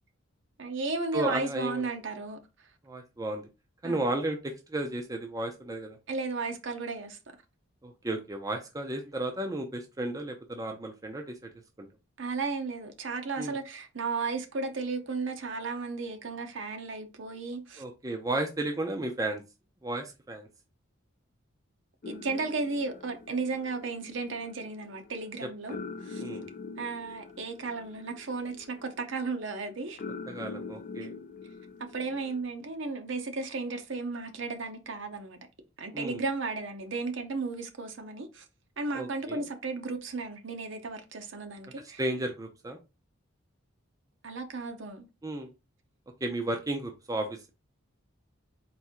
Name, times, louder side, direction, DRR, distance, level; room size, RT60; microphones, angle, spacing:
voice 1, 0.6-2.4 3.8-4.1 6.1-7.2 12.2-17.8 22.1-26.2 26.8-30.0 31.8-35.4 35.8-38.4 38.8-42.0 44.2-45.1, right 3 dB, 60° right, 0.8 m, -34 dB
voice 2, 1.1-1.9 2.9-3.5 3.8-6.0 7.8-11.5 11.8-11.9 13.4-13.6 17.8-19.4 19.8-20.5 26.2-26.4 30.3-31.1 35.9-36.2 38.9-39.4 42.0-42.8 45.2-45.5 46.2-47.5, right 1 dB, 15° right, 0.5 m, -33 dB
sound 1, 22.0-32.4, left 4 dB, 40° left, 0.4 m, -44 dB
4.3 x 2.7 x 3.6 m
head